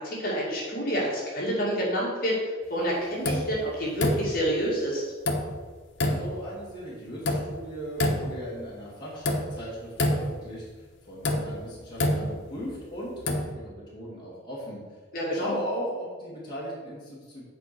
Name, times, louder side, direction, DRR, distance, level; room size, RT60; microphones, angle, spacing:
voice 1, 0.0-5.0 15.1-15.6, equal, 45° left, -5 dB, 2.3 m, -28 dB
sound 1, 3.2-3.6 4.0-4.5 5.2-5.6 6.0-6.4 7.2-7.6 8.0-8.5 9.2-9.6 10.0-10.5 11.2-12.7 13.1-13.5, left 1 dB, 70° left, 1.0 m, -27 dB
voice 2, 6.0-14.8 15.3-17.4, equal, 20° left, -7 dB, 2.2 m, -37 dB
8.3 x 4.6 x 6.0 m, 1.4 s
head